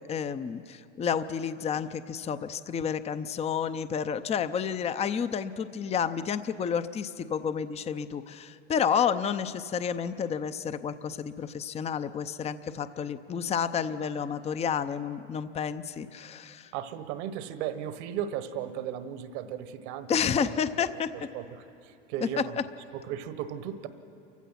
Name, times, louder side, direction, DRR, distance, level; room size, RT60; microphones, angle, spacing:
voice 1, 0.0-16.7 20.1-21.1, left 7 dB, 20° left, 13 dB, 0.6 m, -30 dB
voice 2, 16.7-20.1 20.4-20.6 21.3-22.6 22.9-23.9, right 10 dB, 65° right, 11 dB, 1.4 m, -36 dB
28.5 x 15.5 x 5.8 m, 2.9 s
hypercardioid pair, 105°, 36 cm